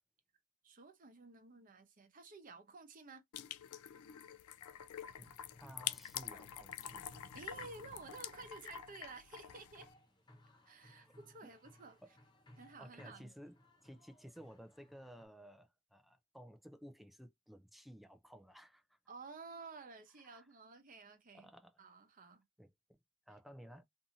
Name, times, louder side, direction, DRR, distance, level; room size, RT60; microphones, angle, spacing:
voice 1, 0.6-3.2 7.3-9.9 10.7-12.0 12.6-13.3 19.1-21.5 21.8-22.4, right 3 dB, 40° right, 0.8 m, -53 dB
sound 1, 3.3-9.9, left 11 dB, 85° left, 0.4 m, -47 dB
voice 2, 5.2-7.0 11.0-11.1 12.8-13.6 13.8-19.0 20.3-20.4 21.3-21.8 22.6-22.7 23.3-23.8, equal, ahead, 0.4 m, -55 dB
sound 2, 5.4-15.3, left 1 dB, 20° left, 0.9 m, -64 dB
2.7 x 2.5 x 2.6 m
head